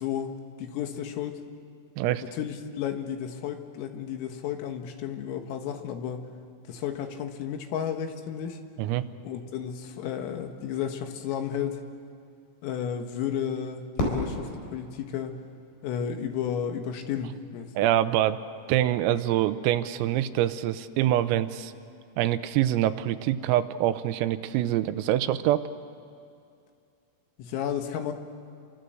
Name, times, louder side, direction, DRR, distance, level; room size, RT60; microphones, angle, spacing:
voice 1, 0.0-1.4 2.2-6.3 6.7-8.6 9.2-11.8 12.6-15.4 15.8-17.9 27.4-28.1, left 8 dB, 80° left, 5 dB, 4.3 m, -33 dB
Fireworks, 14.0-16.2, left 1 dB, 55° left, 6.4 m, -33 dB
voice 2, 17.8-18.4 18.7-21.7 22.2-25.7, right 12 dB, 90° right, 11 dB, 3.6 m, -25 dB
30.0 x 24.5 x 7.9 m, 2.4 s
omnidirectional pair, 5.9 m